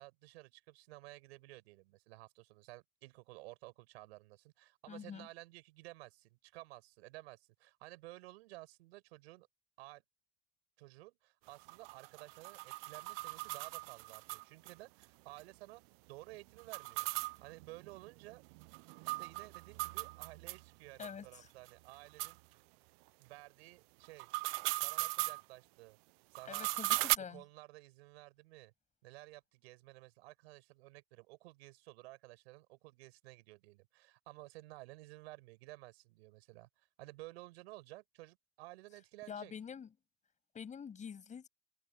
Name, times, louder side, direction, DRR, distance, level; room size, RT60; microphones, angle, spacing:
voice 1, 0.0-9.5 9.8-10.0 10.8-15.8 16.1-17.1 17.4-18.4 19.0-22.4 23.2-24.3 24.8-26.0 26.3-26.7 27.3-28.7 29.0-39.5, right 21 dB, 85° right, 6.4 m, -54 dB
voice 2, 4.9-5.3 21.0-21.5 26.5-27.4 39.3-39.9 40.5-41.5, left 7 dB, 25° left, 7.2 m, -46 dB
sound 1, 11.5-14.7 15.0-15.1 15.4-15.5 16.6-20.6 21.0-21.1 21.7-21.8 22.2-22.3 24.0-25.4 26.4-27.2, right 25 dB, 70° right, 0.6 m, -38 dB
open air
supercardioid pair, 145°, 31 cm